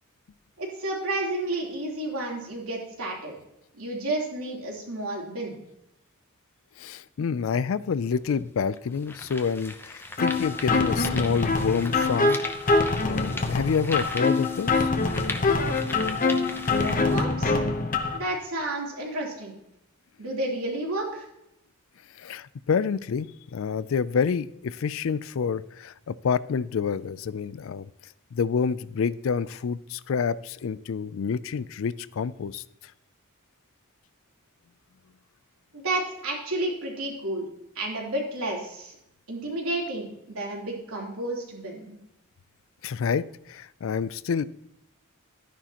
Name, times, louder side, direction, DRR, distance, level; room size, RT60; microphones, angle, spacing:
voice 1, 0.6-3.3 3.7-5.5 16.7-17.5 18.1-19.5 20.2-21.3 35.7-37.5 37.7-38.9 39.3-41.9, right 1 dB, 85° right, -2 dB, 3.4 m, -31 dB
voice 2, 6.8-12.4 12.7-14.9 22.2-27.9 28.3-32.6 42.8-44.4, left 6 dB, 65° left, 18 dB, 0.4 m, -28 dB
sound 1, 8.0-8.1 8.8-17.2, left 2 dB, 10° left, 0.7 m, -39 dB
sound 2, 10.2-18.2, left 3 dB, 40° left, 0.9 m, -25 dB
12.5 x 9.9 x 3.0 m, 0.82 s
head